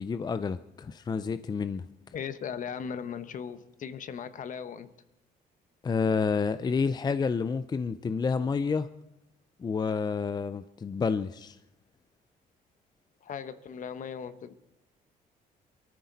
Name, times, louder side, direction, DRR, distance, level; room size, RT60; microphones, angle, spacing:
voice 1, 0.0-1.9 5.8-8.9 9.6-11.6, left 5 dB, 25° left, 13 dB, 0.5 m, -29 dB
voice 2, 2.1-4.9 13.2-14.6, left 7 dB, 50° left, 13 dB, 1.0 m, -38 dB
22.5 x 14.0 x 4.1 m, 0.83 s
cardioid pair, 95°, 17 cm